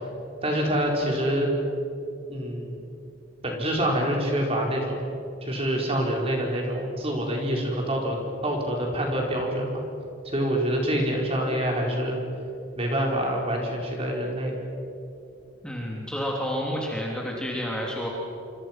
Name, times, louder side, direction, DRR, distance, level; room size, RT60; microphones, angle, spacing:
voice 1, 0.4-1.5 2.3-2.8 3.4-5.1 5.4-8.2 8.4-9.8 10.2-12.2 12.8-14.5, equal, 30° right, 0 dB, 4.7 m, -26 dB
voice 2, 15.6-18.1, equal, 5° left, -2 dB, 3.1 m, -30 dB
27.0 x 27.0 x 6.1 m, 2.7 s
head